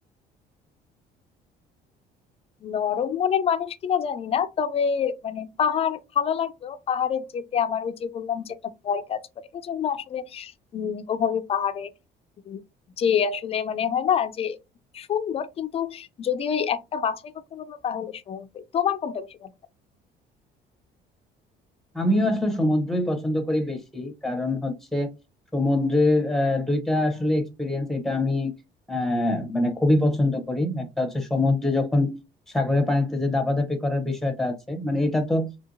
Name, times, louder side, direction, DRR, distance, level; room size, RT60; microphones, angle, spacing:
voice 1, 2.6-8.6 8.8-11.9 12.5-12.6 13.0-14.6 14.9-19.5, left 8 dB, 35° left, 0.4 m, -27 dB
voice 2, 21.9-25.1 25.5-28.6 28.9-32.2 32.5-35.5, left 2 dB, ahead, 0.7 m, -24 dB
3.1 x 2.7 x 2.5 m
cardioid pair, 110°, 17 cm